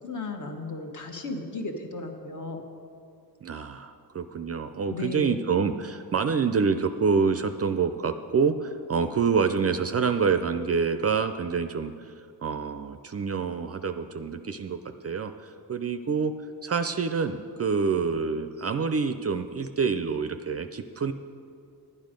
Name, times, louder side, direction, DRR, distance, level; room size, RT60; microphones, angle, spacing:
voice 1, 0.0-2.6 4.9-5.4, left 3 dB, 45° left, 3 dB, 1.3 m, -35 dB
voice 2, 3.4-12.1 12.4-14.8 15.0-16.3 16.6-21.1, right 5 dB, 35° right, 9 dB, 0.4 m, -27 dB
11.0 x 9.5 x 5.2 m, 2.4 s
cardioid pair, 100°, 41 cm